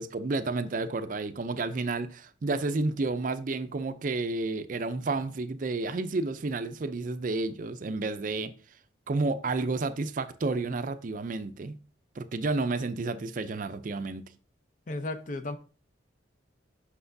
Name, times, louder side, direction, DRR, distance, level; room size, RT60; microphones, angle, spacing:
voice 1, 0.0-8.5 9.1-11.8 12.2-14.3, right 3 dB, 45° right, 0.4 m, -31 dB
voice 2, 14.9-15.6, left 2 dB, 45° left, 0.6 m, -34 dB
7.9 x 6.1 x 2.6 m
head